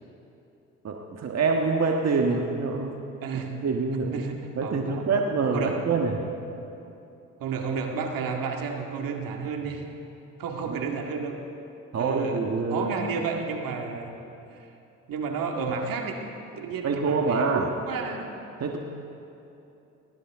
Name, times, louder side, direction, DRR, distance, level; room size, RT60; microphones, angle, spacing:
voice 1, 0.8-3.0 3.6-4.2 4.5-6.2 10.7-10.8 11.9-12.9 16.8-17.7 18.6-18.8, right 4 dB, 45° right, 1 dB, 1.5 m, -25 dB
voice 2, 3.2-3.6 4.1-5.0 5.5-5.8 7.4-9.8 10.4-11.4 11.9-12.4 12.7-14.1 15.1-16.2 16.6-18.3, right 5 dB, 65° right, 2 dB, 2.1 m, -31 dB
19.5 x 19.0 x 3.7 m, 2.8 s
hypercardioid pair, 60°, 37 cm